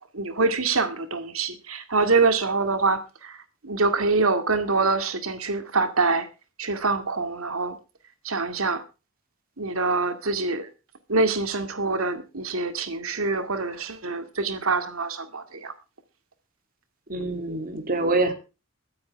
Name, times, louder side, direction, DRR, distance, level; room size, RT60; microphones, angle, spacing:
voice 1, 0.1-3.4 3.6-6.3 6.6-7.8 8.2-8.8 9.6-10.7 11.1-15.7, right 3 dB, 90° right, 2.2 m, -25 dB
voice 2, 17.1-18.3, right 2 dB, 45° right, 2.7 m, -25 dB
23.0 x 9.5 x 3.4 m
head